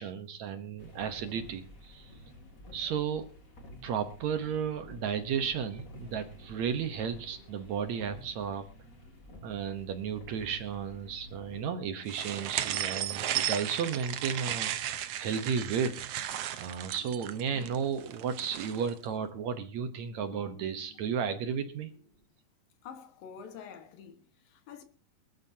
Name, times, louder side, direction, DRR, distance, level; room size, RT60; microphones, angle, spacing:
voice 1, 0.0-2.2 2.7-3.3 3.8-8.7 9.4-14.7 15.2-21.9, right 7 dB, 65° right, 2.0 m, -34 dB
sound 1, 0.8-11.7, equal, 25° left, 2.5 m, -51 dB
sound 2, 12.1-18.9, right 11 dB, 85° right, 1.3 m, -35 dB
sound 3, 16.1-22.3, left 2 dB, 15° right, 6.7 m, -58 dB
voice 2, 22.8-24.8, left 7 dB, 80° left, 3.2 m, -47 dB
24.0 x 13.5 x 2.8 m
omnidirectional pair, 4.0 m